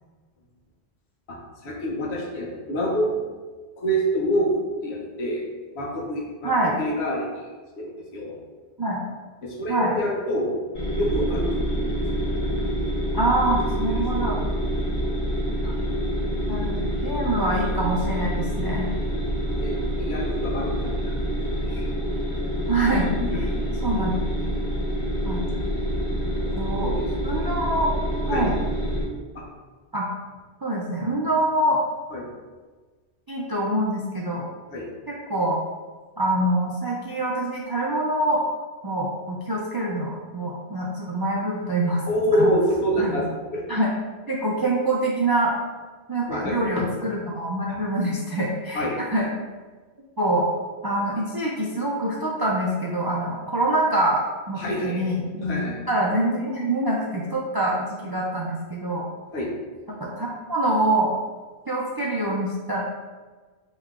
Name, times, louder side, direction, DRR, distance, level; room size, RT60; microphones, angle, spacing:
voice 1, 1.6-3.1 3.8-5.4 5.7-7.4 7.8-8.4 9.4-10.6 11.0-11.7 14.1-14.4 14.7-14.8 18.4-18.5 19.6-21.1 21.5-21.8 23.2-23.4 26.4-26.5 26.8-27.1 27.4-27.5 28.3-28.5 29.3-29.4 32.1-32.2 34.7-34.9 42.1-43.3 43.5-43.6 46.3-46.9 47.7-47.8 48.7-49.0 54.6-55.1 55.4-55.8 59.3-59.5, equal, 70° left, -2 dB, 1.1 m, -26 dB
sound 1, 10.7-29.0, equal, 50° left, 1.3 m, -27 dB
voice 2, 13.1-14.4 15.6-15.7 16.5-18.9 22.7-23.1 23.8-24.6 25.2-25.4 26.4-26.9 27.2-27.9 28.3-28.5 29.9-30.1 30.6-31.8 33.3-34.5 35.1-35.6 36.2-38.4 38.8-42.0 42.4-42.5 43.0-43.2 43.7-43.9 44.3-45.5 46.1-49.3 50.2-50.5 50.8-55.4 55.9-59.0 59.9-61.1 61.7-62.8, right 1 dB, 40° right, -3 dB, 0.3 m, -25 dB
5.5 x 3.1 x 2.4 m, 1.4 s
omnidirectional pair, 1.1 m